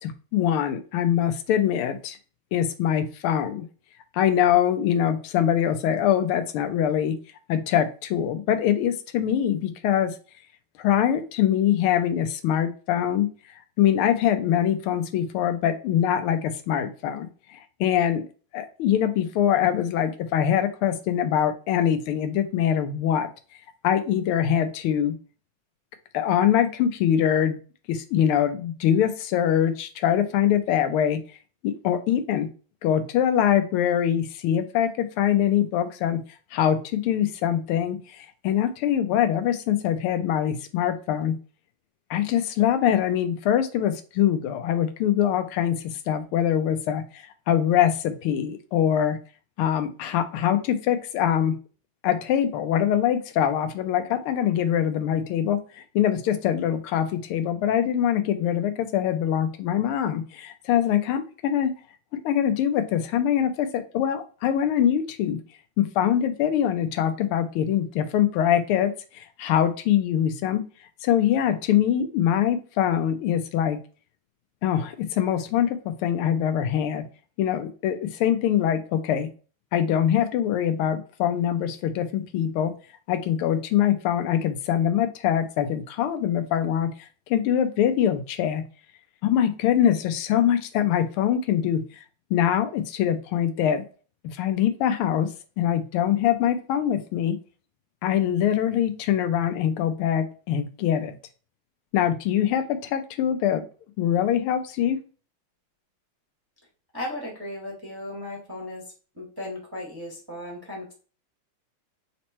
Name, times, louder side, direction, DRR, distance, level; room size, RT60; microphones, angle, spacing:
voice 1, 0.0-2.2 2.5-3.7 4.1-7.2 7.5-10.1 10.8-18.3 18.5-23.3 23.8-25.1 26.1-27.6 27.9-31.2 31.6-32.5 32.8-36.2 36.5-41.3 42.1-49.2 49.6-51.5 52.0-61.7 62.1-65.4 65.8-70.6 71.0-73.8 74.6-77.0 77.4-79.3 79.7-82.7 83.1-88.6 89.2-91.8 92.3-93.8 94.2-95.3 95.6-97.4 98.0-101.1 101.9-103.6 104.0-105.0, left 10 dB, 80° left, 9 dB, 1.5 m, -23 dB
voice 2, 106.9-108.8 109.1-110.9, left 1 dB, 15° right, -2 dB, 0.9 m, -36 dB
4.3 x 3.0 x 4.2 m, 0.38 s
omnidirectional pair, 2.4 m